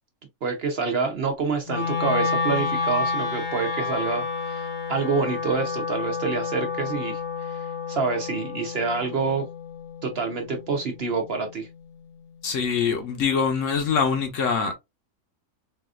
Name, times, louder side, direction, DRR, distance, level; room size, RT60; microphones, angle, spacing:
voice 1, 0.4-9.5 10.0-11.7, right 4 dB, 55° right, 0.7 m, -27 dB
Wind instrument woodwind instrument, 1.7-11.8, left 4 dB, 45° left, 0.7 m, -30 dB
voice 2, 12.4-14.7, left 6 dB, 65° left, 1.1 m, -24 dB
4.0 x 2.4 x 2.3 m
omnidirectional pair, 1.5 m